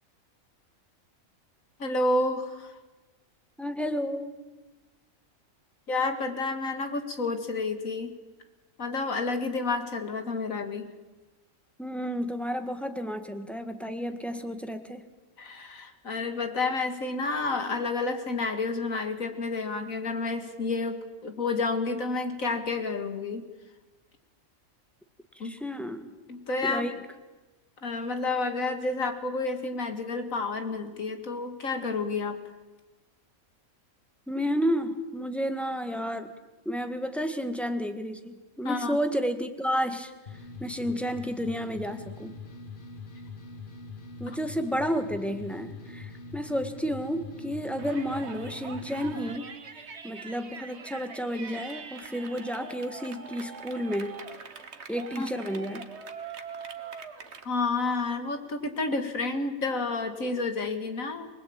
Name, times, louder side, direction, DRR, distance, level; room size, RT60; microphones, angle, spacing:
voice 1, 1.8-2.8 5.9-8.1 8.8-10.9 15.4-23.5 25.4-25.5 26.3-26.9 27.8-32.4 38.6-39.0 44.3-44.4 55.2-55.3 57.4-61.3, left 3 dB, 75° left, 7 dB, 2.5 m, -30 dB
voice 2, 3.6-4.3 11.8-15.0 25.3-26.1 26.6-26.9 34.3-36.3 36.6-40.1 40.6-42.3 44.2-54.2 54.9-55.9, equal, ahead, 7 dB, 1.7 m, -31 dB
sound 1, 40.3-49.4, left 3 dB, 40° left, 1.4 m, -43 dB
Yell, 47.8-57.5, right 5 dB, 55° right, 1.7 m, -43 dB
24.5 x 20.5 x 8.9 m, 1.1 s
omnidirectional pair, 1.4 m